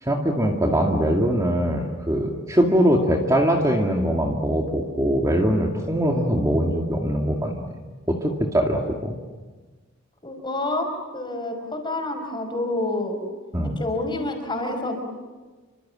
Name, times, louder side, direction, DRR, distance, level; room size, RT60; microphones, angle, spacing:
voice 1, 0.0-7.5 8.1-9.2 13.5-13.8, equal, 15° right, 1 dB, 2.2 m, -22 dB
voice 2, 10.2-10.9 11.1-13.2 13.8-15.0, left 2 dB, 25° left, 4 dB, 5.5 m, -28 dB
29.0 x 25.5 x 7.5 m, 1.3 s
head